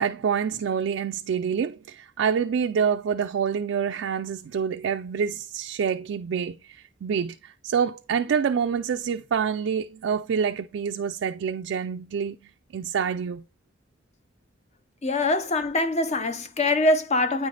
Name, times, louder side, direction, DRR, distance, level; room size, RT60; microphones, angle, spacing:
voice 1, 0.0-12.4 12.7-13.4, right 7 dB, 75° right, 0.3 m, -27 dB
voice 2, 15.0-17.5, left 2 dB, 35° left, 0.7 m, -23 dB
9.1 x 3.3 x 3.9 m
head